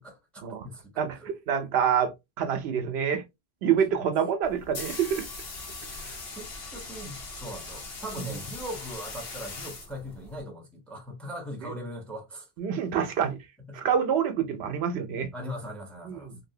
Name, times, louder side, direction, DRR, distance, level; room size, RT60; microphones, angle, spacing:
voice 1, 0.0-0.9 1.2-1.3 6.3-12.5 13.7-13.9 15.3-16.3, equal, ahead, 0.6 m, -40 dB
voice 2, 1.0-3.2 3.6-5.3 6.0-6.2 8.3-8.4 12.6-13.4 13.7-15.3 16.1-16.4, right 8 dB, 80° right, 0.8 m, -27 dB
sound 1, 4.4-10.4, left 3 dB, 70° left, 1.1 m, -40 dB
2.7 x 2.6 x 2.7 m
omnidirectional pair, 1.1 m